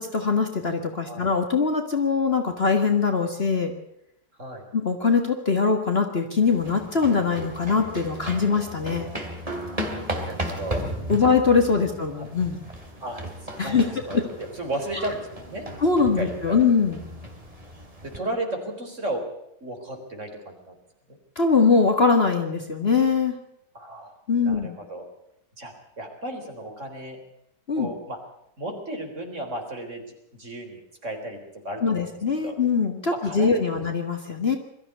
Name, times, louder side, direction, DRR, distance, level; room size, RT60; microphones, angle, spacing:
voice 1, 0.0-3.7 4.7-9.1 11.1-12.6 13.6-13.9 14.1-14.2 15.8-17.0 21.4-23.3 24.3-24.7 27.7-27.9 31.8-34.6, left 5 dB, 35° left, 4 dB, 1.9 m, -22 dB
sound 1, 6.4-18.2, equal, 20° right, 3.1 m, -36 dB
voice 2, 9.5-10.8 11.2-11.3 11.8-11.9 12.2-12.3 13.0-15.7 16.2-16.6 18.0-19.2 19.6-20.8 21.1-21.2 23.7-24.1 24.4-25.0 25.6-27.2 27.7-28.2 28.6-30.0 30.3-31.4 31.6-32.1 32.4-32.5 33.1-33.8, right 1 dB, 40° right, 3 dB, 4.2 m, -34 dB
22.0 x 14.0 x 8.3 m, 0.77 s
omnidirectional pair, 1.9 m